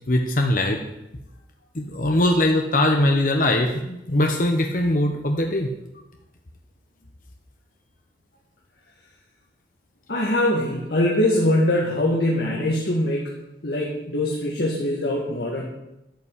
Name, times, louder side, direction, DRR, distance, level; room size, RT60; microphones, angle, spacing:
voice 1, 0.1-0.8 1.7-5.7, left 1 dB, 45° left, 3 dB, 1.1 m, -21 dB
voice 2, 10.1-13.3 13.6-15.6, left 1 dB, 70° left, -2 dB, 2.0 m, -22 dB
11.5 x 5.9 x 8.3 m, 0.91 s
head